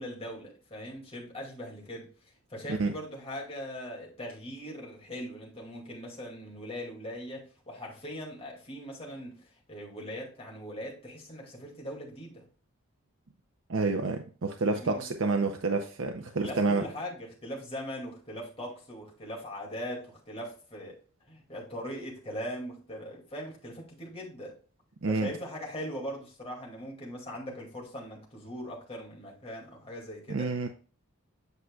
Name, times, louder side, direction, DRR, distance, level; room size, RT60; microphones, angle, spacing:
voice 1, 0.0-2.1 2.5-12.4 14.7-15.0 16.4-21.0 21.3-24.5 25.1-30.5, equal, 30° left, 2.3 m, -40 dB
voice 2, 13.7-16.9 25.0-25.3 30.3-30.7, right 3 dB, 65° right, 0.6 m, -28 dB
8.2 x 6.3 x 2.3 m
head